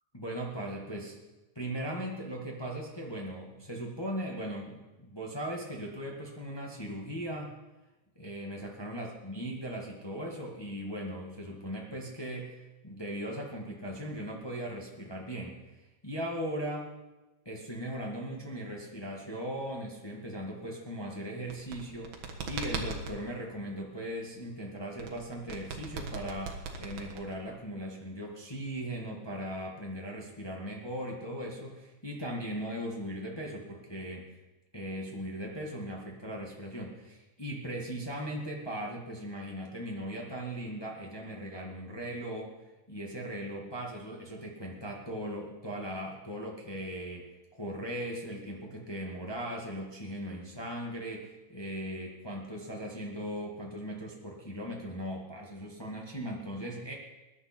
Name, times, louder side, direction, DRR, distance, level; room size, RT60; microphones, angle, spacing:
voice 1, 0.1-1.2 1.5-7.5 8.1-15.6 16.0-16.9 17.4-22.1 22.4-34.3 34.7-42.5 42.9-56.9, equal, 35° left, -1 dB, 0.4 m, -38 dB
sound 1, 21.4-23.2 25.0-27.6, right 5 dB, 60° right, 2.7 m, -38 dB
20.5 x 11.0 x 4.4 m, 1.1 s
omnidirectional pair, 3.9 m